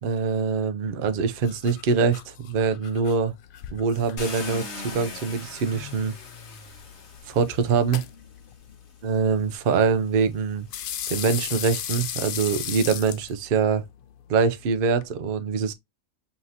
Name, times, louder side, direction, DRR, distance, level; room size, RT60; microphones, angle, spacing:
voice 1, 0.0-3.3 3.7-6.2 7.3-8.0 9.0-10.7 11.1-13.8 14.3-15.7, right 5 dB, 55° right, 0.7 m, -24 dB
sound 1, 0.9-15.1, left 9 dB, 75° left, 0.4 m, -38 dB
Car, 4.2-8.3 9.2-9.3 9.8-13.1, left 4 dB, 55° left, 1.3 m, -41 dB
5.5 x 2.9 x 2.7 m
omnidirectional pair, 1.5 m